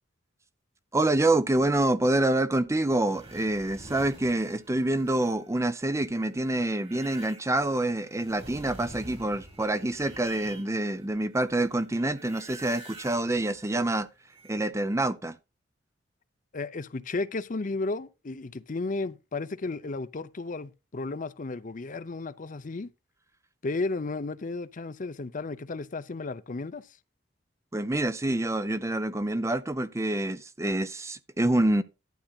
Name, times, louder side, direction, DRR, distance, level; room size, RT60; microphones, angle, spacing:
voice 1, 0.9-14.1 14.5-15.4 27.7-31.8, right 1 dB, 15° right, 0.5 m, -27 dB
sound 1, 2.8-11.1 11.3-14.7, right 1 dB, 30° right, 2.1 m, -48 dB
voice 2, 16.5-22.9 23.6-26.9, left 3 dB, 45° left, 0.6 m, -33 dB
11.5 x 9.4 x 2.4 m
head